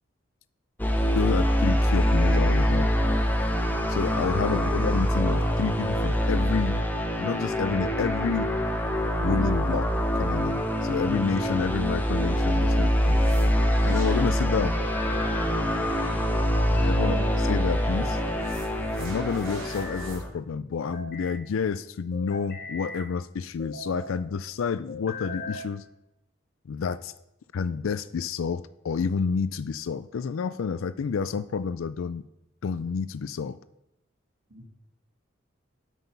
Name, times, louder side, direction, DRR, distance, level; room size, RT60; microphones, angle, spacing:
sound 1, 0.8-20.3, equal, 10° left, 0.8 m, -25 dB
voice 1, 1.1-2.9 3.9-6.8 7.2-8.5 9.2-9.9 10.1-13.2 13.8-14.8 16.7-18.2 19.0-25.8 26.7-27.1 27.5-32.2 32.6-33.6, left 5 dB, 85° left, 15 dB, 0.4 m, -29 dB
sound 2, 13.0-20.2, right 2 dB, 90° right, 2.4 m, -45 dB
sound 3, 13.1-13.9 14.7-15.5 16.6-17.4 17.9-18.6 19.2-20.1 20.7-21.4 22.1-23.1 23.6-24.1 24.9-25.7, left 3 dB, 50° left, 3.3 m, -40 dB
voice 2, 16.9-17.5 34.5-34.7, right 1 dB, 65° right, -3 dB, 2.0 m, -38 dB
8.3 x 8.3 x 5.4 m, 0.87 s
head